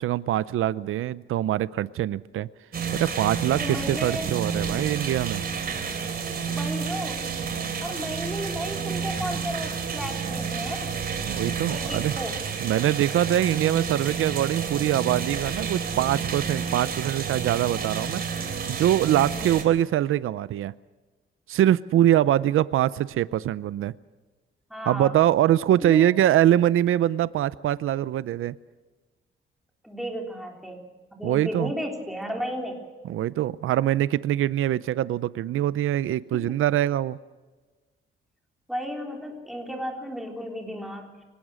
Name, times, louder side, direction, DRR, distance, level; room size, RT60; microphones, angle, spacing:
voice 1, 0.0-2.5 2.9-5.4 11.3-12.1 12.6-18.2 18.7-20.7 21.5-23.9 24.9-28.5 31.2-31.7 33.1-37.2, right 12 dB, 85° right, 0.6 m, -23 dB
sound 1, 2.7-19.6, right 6 dB, 50° right, 3.4 m, -30 dB
voice 2, 3.6-4.3 6.5-7.4 7.8-11.0 11.7-12.4 19.2-19.6 24.7-25.1 25.8-26.0 29.8-32.8 36.3-36.5 38.7-41.2, equal, ahead, 3.7 m, -34 dB
24.5 x 18.5 x 6.4 m
wide cardioid pair, 155°, 21 cm